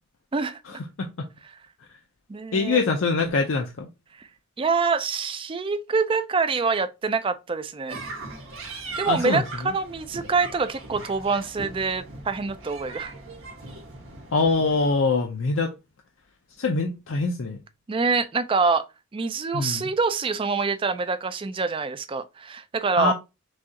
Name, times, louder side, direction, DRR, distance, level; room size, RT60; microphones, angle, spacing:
voice 1, 0.3-0.8 2.3-2.8 4.2-4.3 4.6-8.0 9.0-13.1 17.9-18.8 19.1-23.1, right 4 dB, 25° right, 0.4 m, -25 dB
voice 2, 2.5-3.9 9.0-9.7 14.3-15.7 16.6-17.6 19.5-19.9 23.0-23.1, left 4 dB, 70° left, 0.5 m, -24 dB
sound 1, 7.9-14.9, right 3 dB, 85° right, 1.7 m, -39 dB
6.1 x 2.4 x 2.8 m
head